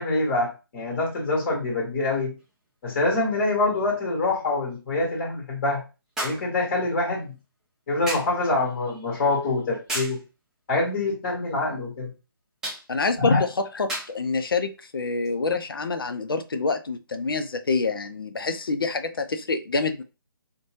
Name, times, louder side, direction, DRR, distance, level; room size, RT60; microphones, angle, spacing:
voice 1, 0.0-2.3 2.8-5.8 6.2-7.3 7.9-10.2 10.7-12.1 13.2-13.4, left 2 dB, 35° left, 1.1 m, -25 dB
sound 1, 2.4-2.5 6.2-6.5 8.1-8.4 9.9-10.2 12.6-12.9 13.9-14.2 15.2-15.4, right 1 dB, 5° right, 0.4 m, -32 dB
voice 2, 12.9-20.0, left 4 dB, 70° left, 0.4 m, -27 dB
2.6 x 2.2 x 3.1 m
figure-of-eight pair, 145°, 12 cm